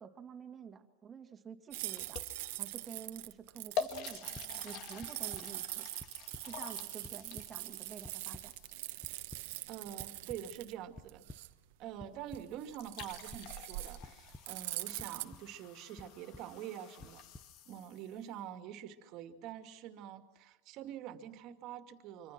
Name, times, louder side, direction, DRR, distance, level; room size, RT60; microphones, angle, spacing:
voice 1, 0.0-2.2 2.6-4.3 4.6-5.9 6.4-8.5, right 7 dB, 20° right, 5 dB, 2.4 m, -49 dB
sound 1, 1.7-15.2, right 18 dB, 65° right, 1.3 m, -43 dB
sound 2, 2.0-2.7 3.2-3.3 3.8-9.0 12.4-12.5 12.7-18.2, left 6 dB, 45° left, 2.0 m, -46 dB
sound 3, 4.3-4.5 5.0-5.4 6.0-6.4 6.8-7.5 8.0-8.4 9.0-9.4 10.0-10.4 11.0-11.4 12.0-12.4 13.0-13.4 14.0-14.4 15.0-15.4 16.0-16.4 17.0-17.4, left 2 dB, 10° left, 1.0 m, -50 dB
voice 2, 9.7-11.3 11.8-17.2 17.7-22.3, right 10 dB, 45° right, 8 dB, 2.4 m, -46 dB
26.0 x 25.5 x 6.1 m, 1.1 s
supercardioid pair, 150°, 0 cm